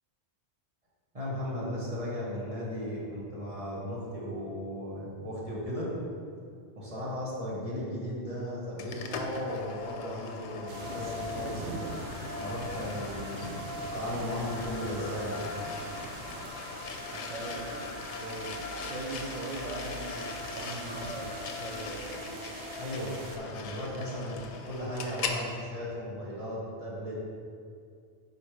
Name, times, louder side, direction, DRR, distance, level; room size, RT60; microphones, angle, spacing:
voice 1, 1.1-5.9 6.8-11.8 12.3-15.5 22.8-27.1, equal, 30° right, -7 dB, 1.5 m, -36 dB
sound 1, 8.8-25.4, left 4 dB, 85° left, 0.9 m, -39 dB
sound 2, 10.7-12.6 13.2-13.7 14.1-15.7 16.0-16.7 17.3-19.6, left 1 dB, 40° left, 1.0 m, -54 dB
sound 3, 10.7-23.4, right 4 dB, 85° right, 0.9 m, -43 dB
voice 2, 17.1-17.9 18.2-18.6 18.9-22.3, right 3 dB, 50° right, 1 dB, 0.6 m, -40 dB
4.9 x 4.6 x 4.9 m, 2.3 s
omnidirectional pair, 1.1 m